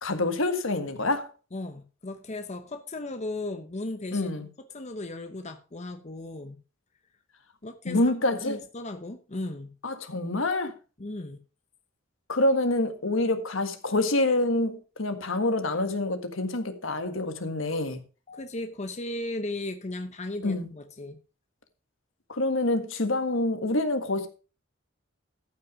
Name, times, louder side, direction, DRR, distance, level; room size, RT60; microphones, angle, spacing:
voice 1, 0.0-1.3 4.1-4.5 7.9-8.6 9.8-10.7 12.3-18.0 20.4-20.6 22.3-24.3, left 2 dB, 75° left, 1.7 m, -26 dB
voice 2, 1.5-4.4 4.7-6.6 7.6-9.8 11.0-11.4 17.7-17.9 18.3-21.2, left 2 dB, 35° left, 0.9 m, -36 dB
13.5 x 6.0 x 4.9 m
head